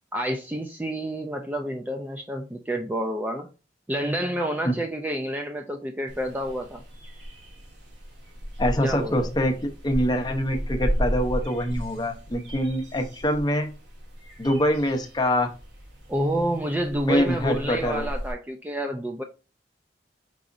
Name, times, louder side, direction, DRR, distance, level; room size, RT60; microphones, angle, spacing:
voice 1, 0.1-3.5 3.9-6.8 8.8-9.3 16.1-19.2, right 1 dB, 10° right, 0.3 m, -29 dB
sound 1, 6.1-18.3, equal, 85° right, 1.6 m, -34 dB
voice 2, 8.6-9.5 9.8-13.7 14.4-15.5 17.1-18.1, equal, 25° left, 0.7 m, -24 dB
4.8 x 4.0 x 2.5 m
head